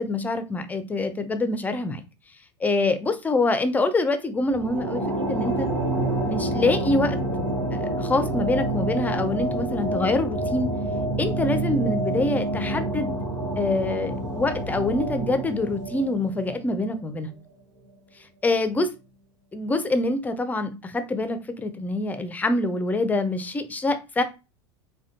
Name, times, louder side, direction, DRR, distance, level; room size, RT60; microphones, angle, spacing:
voice 1, 0.0-2.0 2.6-5.0 5.3-5.7 6.3-7.2 7.7-10.7 11.2-13.1 13.6-17.3 18.4-18.9 19.5-24.2, left 2 dB, 10° left, 0.5 m, -25 dB
sound 1, 4.5-17.1, right 1 dB, 90° right, 1.0 m, -28 dB
4.2 x 2.2 x 2.5 m
figure-of-eight pair, 85°, 15 cm